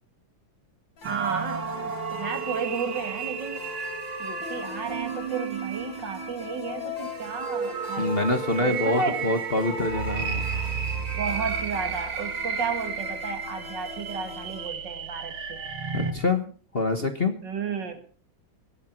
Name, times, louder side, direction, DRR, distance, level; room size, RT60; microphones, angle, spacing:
sound 1, 1.0-14.7, left 6 dB, 65° left, 3.4 m, -41 dB
sound 2, 1.0-16.1, right 6 dB, 80° right, 2.5 m, -33 dB
voice 1, 1.1-3.7 4.2-8.2 8.6-9.3 11.1-15.6 17.4-18.0, right 5 dB, 60° right, 7 dB, 2.6 m, -33 dB
voice 2, 8.0-10.4 15.9-17.4, left 2 dB, 30° left, 7 dB, 1.5 m, -26 dB
19.5 x 13.0 x 4.6 m, 0.43 s
omnidirectional pair, 2.2 m